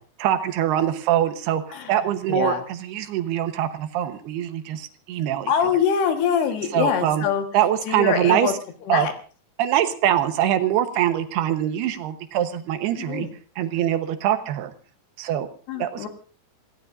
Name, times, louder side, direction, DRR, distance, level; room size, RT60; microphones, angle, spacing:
voice 1, 0.2-1.6 1.9-5.5 6.7-7.2 7.5-8.5 8.9-9.1 9.6-13.3 13.6-14.7 15.2-15.5 15.8-16.1, right 11 dB, 70° right, 8 dB, 2.9 m, -23 dB
voice 2, 2.3-2.6 5.5-7.4 7.9-8.5 8.9-9.1 13.0-13.3 15.7-16.1, left 7 dB, 70° left, 6 dB, 3.4 m, -24 dB
27.5 x 17.5 x 2.6 m, 0.38 s
omnidirectional pair, 5.1 m